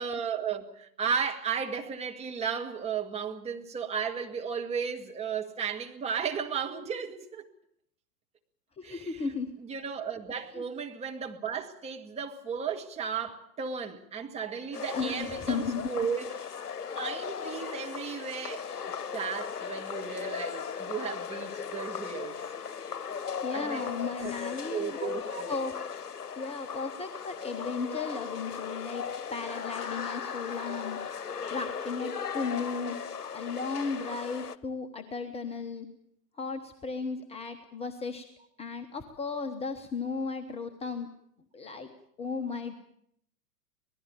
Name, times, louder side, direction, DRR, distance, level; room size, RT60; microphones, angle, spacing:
voice 1, 0.0-7.5 8.8-9.1 9.6-16.3 16.9-18.7 19.1-22.4 23.5-23.8 24.2-24.3 24.7-25.5, right 6 dB, 15° right, 1.7 m, -34 dB
voice 2, 8.8-9.6 10.3-10.6 14.9-15.9 23.4-25.1 25.5-25.7 26.4-29.0 29.3-33.0 33.3-35.9 36.3-38.2 38.6-41.1 41.5-41.9 42.2-42.7, left 4 dB, 10° left, 1.1 m, -35 dB
sound 1, 14.7-34.6, left 6 dB, 65° left, 1.1 m, -37 dB
26.0 x 19.0 x 7.1 m
figure-of-eight pair, 105°, 48 cm